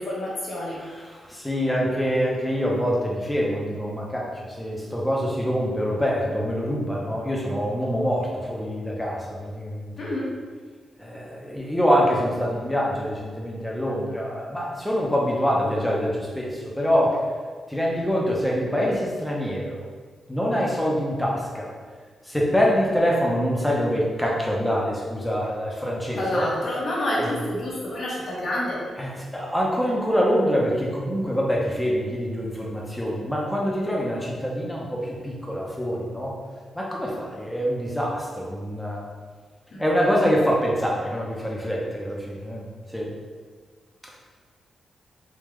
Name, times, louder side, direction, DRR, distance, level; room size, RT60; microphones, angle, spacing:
voice 1, 0.0-0.8 10.0-10.3 26.1-28.8 39.7-39.8, left 1 dB, 60° left, -5 dB, 1.1 m, -28 dB
voice 2, 0.7-10.1 11.0-17.2 17.7-19.9 20.3-21.7 22.3-26.5 27.2-27.3 29.0-36.4 36.7-39.0 39.8-42.7 42.9-43.1, equal, 5° left, -3 dB, 0.8 m, -25 dB
3.6 x 2.8 x 3.2 m, 1.6 s
cardioid pair, 115°, 0 cm